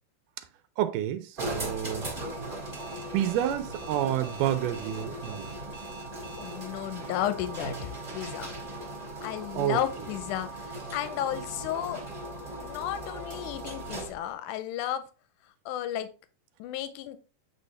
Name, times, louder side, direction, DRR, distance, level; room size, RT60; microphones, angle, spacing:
voice 1, 0.8-2.1 3.1-5.5 9.5-9.8, right 11 dB, 80° right, 2.1 m, -29 dB
sound 1, 1.4-14.3, right 1 dB, 25° right, 1.3 m, -38 dB
Alarm, 2.7-6.5, right 4 dB, 10° left, 1.4 m, -48 dB
voice 2, 6.4-8.5 9.2-12.0 12.6-15.0 15.7-16.1 16.6-17.2, left 11 dB, 80° left, 2.1 m, -33 dB
8.4 x 4.1 x 3.3 m
omnidirectional pair, 3.8 m